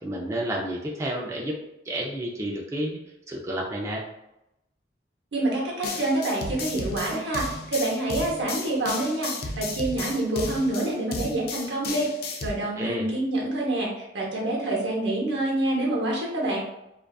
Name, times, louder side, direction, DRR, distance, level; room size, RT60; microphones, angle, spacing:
voice 1, 0.0-1.6 1.9-3.0 3.3-4.0 12.8-13.1, right 1 dB, 15° right, -3 dB, 0.3 m, -30 dB
voice 2, 5.3-13.9 14.1-16.6, right 1 dB, 75° right, -3 dB, 0.8 m, -27 dB
sound 1, 5.8-12.5, left 3 dB, 60° left, 0.4 m, -34 dB
2.4 x 2.3 x 2.2 m, 0.88 s
head